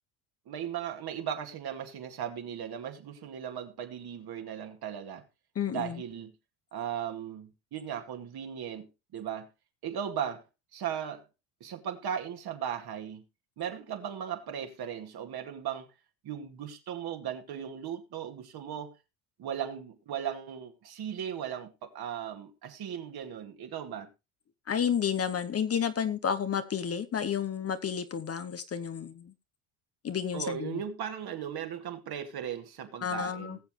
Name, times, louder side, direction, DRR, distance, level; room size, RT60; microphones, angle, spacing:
voice 1, 0.5-5.2 5.7-6.3 6.7-9.5 9.8-10.4 10.7-11.2 11.6-13.2 13.6-15.9 16.2-18.9 19.4-24.1 30.3-33.6, right 9 dB, 50° right, 2.3 m, -37 dB
voice 2, 5.6-6.0 24.7-29.3 30.0-30.8 33.0-33.6, left 8 dB, 30° left, 0.9 m, -31 dB
19.5 x 7.2 x 3.2 m
supercardioid pair, 105°, 48 cm